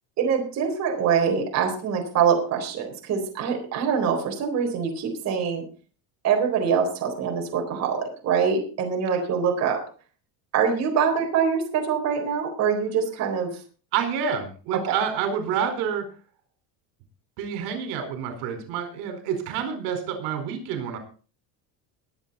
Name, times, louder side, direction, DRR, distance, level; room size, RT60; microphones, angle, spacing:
voice 1, 0.2-5.6 6.2-9.8 10.5-13.5 14.9-15.0, right 6 dB, 40° right, 2 dB, 4.1 m, -24 dB
voice 2, 13.9-16.0 17.4-21.0, right 7 dB, 85° right, 6 dB, 4.6 m, -28 dB
22.5 x 8.1 x 4.1 m, 0.38 s
cardioid pair, 165°, 40 cm